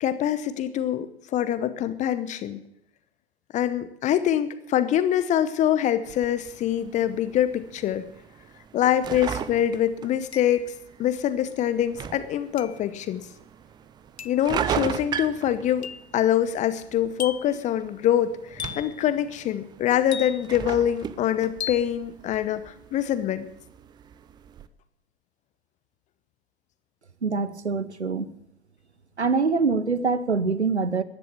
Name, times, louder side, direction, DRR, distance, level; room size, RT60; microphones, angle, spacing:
voice 1, 0.0-2.6 3.5-8.0 8.7-10.6 11.0-13.3 14.2-23.5, left 10 dB, 20° left, 13 dB, 0.9 m, -24 dB
sound 1, 6.0-24.7, right 8 dB, 15° right, 0.5 m, -38 dB
sound 2, 9.1-9.2 10.3-10.9 12.6-12.9 14.2-14.5 15.8-16.2 17.2-17.6 18.6-19.0 20.1-20.6 21.6-21.9, left 7 dB, 75° left, 0.8 m, -37 dB
voice 2, 27.2-28.3 29.2-31.0, right 4 dB, 85° right, 15 dB, 1.1 m, -24 dB
14.0 x 11.0 x 7.4 m, 0.77 s
figure-of-eight pair, 100°, 33 cm